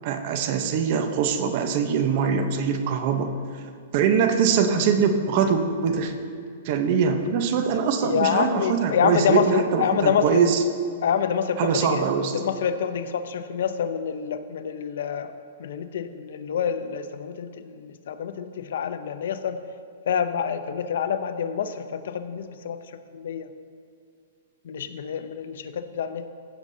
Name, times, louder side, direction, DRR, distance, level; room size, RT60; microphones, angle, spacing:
voice 1, 0.0-3.3 3.9-6.1 6.6-10.6 11.6-12.4, right 6 dB, 45° right, 7 dB, 0.8 m, -23 dB
voice 2, 8.0-10.4 11.0-12.0 12.3-15.3 15.6-19.6 20.1-22.8 23.1-23.5 24.7-26.2, left 7 dB, 70° left, 11 dB, 0.5 m, -27 dB
15.5 x 7.2 x 2.7 m, 2.2 s
hypercardioid pair, 150°, 0 cm